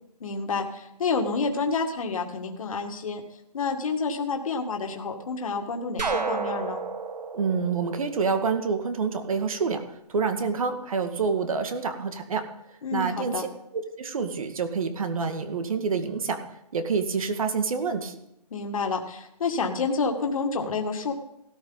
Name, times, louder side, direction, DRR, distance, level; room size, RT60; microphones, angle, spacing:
voice 1, 0.2-3.2 3.5-6.8 12.8-13.4 18.5-21.1, left 4 dB, 55° left, 3 dB, 2.1 m, -29 dB
sound 1, 6.0-8.8, right 4 dB, 85° right, 1.7 m, -31 dB
voice 2, 7.3-12.5 12.9-13.5 13.7-16.4 16.7-18.2, right 5 dB, 55° right, 7 dB, 2.1 m, -27 dB
17.5 x 13.0 x 4.1 m, 0.80 s
hypercardioid pair, 165°, 21 cm